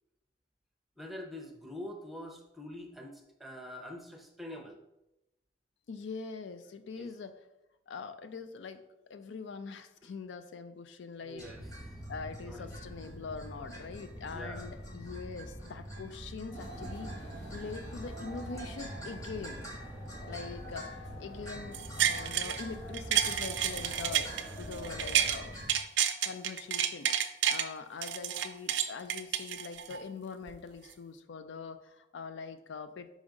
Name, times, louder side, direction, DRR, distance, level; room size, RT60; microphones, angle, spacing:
voice 1, 1.0-4.8 7.0-7.1 11.2-11.6 12.4-12.7 14.3-14.7, left 1 dB, ahead, 2 dB, 0.6 m, -45 dB
voice 2, 5.9-7.4 7.9-11.5 12.1-17.2 17.5-19.6 20.3-24.3 24.6-25.5 26.2-27.1 27.5-33.2, left 5 dB, 70° left, 10 dB, 0.4 m, -43 dB
sound 1, 11.4-25.7, equal, 20° left, 1.1 m, -45 dB
sound 2, 16.5-25.3, right 1 dB, 40° left, 2.3 m, -47 dB
sound 3, 21.7-22.6 22.9-25.4 25.7-27.7 28.0-30.0 30.5-30.6, right 9 dB, 65° right, 0.4 m, -30 dB
5.2 x 4.9 x 3.7 m, 0.90 s
head